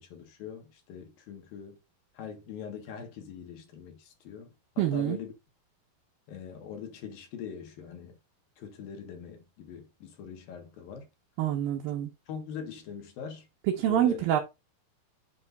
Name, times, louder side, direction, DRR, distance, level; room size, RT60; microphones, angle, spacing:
voice 1, 0.0-1.8 2.1-4.5 4.8-5.3 6.3-8.2 8.6-11.1 12.3-13.5 13.8-14.2, left 7 dB, 75° left, 3.3 m, -42 dB
voice 2, 4.8-5.2 11.4-12.1 13.7-14.4, right 12 dB, 75° right, 2.8 m, -26 dB
7.7 x 3.5 x 5.4 m
omnidirectional pair, 4.2 m